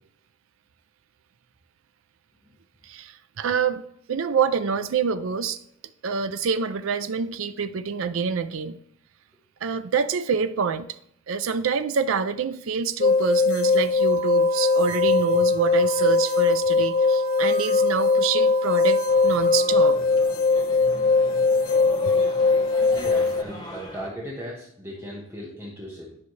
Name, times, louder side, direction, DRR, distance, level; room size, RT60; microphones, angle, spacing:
voice 1, 2.8-3.8 4.1-5.6 6.0-8.8 9.6-10.9 11.3-20.0, right 6 dB, 75° right, 0.4 m, -26 dB
sound 1, 13.0-23.4, left 4 dB, 45° left, 0.4 m, -21 dB
sound 2, 14.0-19.9, right 10 dB, 30° right, 2.7 m, -37 dB
sound 3, 19.1-24.1, left 1 dB, 20° left, 0.9 m, -39 dB
voice 2, 22.9-26.2, equal, 15° right, 1.3 m, -37 dB
10.5 x 5.6 x 3.2 m
head